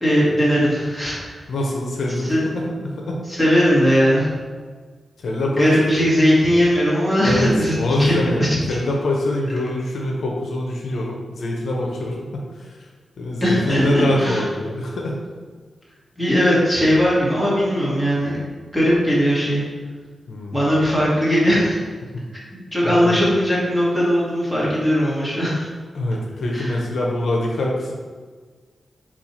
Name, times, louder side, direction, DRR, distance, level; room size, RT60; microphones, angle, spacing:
voice 1, 0.0-1.4 2.2-2.4 3.3-4.3 5.5-8.5 13.4-14.4 16.2-18.4 18.7-19.6 20.5-21.8 22.5-25.7 26.5-26.8, equal, 5° right, -7 dB, 1.2 m, -19 dB
voice 2, 1.5-3.2 5.2-6.1 7.2-7.5 7.7-12.4 13.2-15.2 20.3-20.6 22.1-22.2 22.8-23.2 25.9-27.9, left 1 dB, 70° left, -1 dB, 0.6 m, -24 dB
4.2 x 2.4 x 4.2 m, 1.5 s
wide cardioid pair, 150°, 0 cm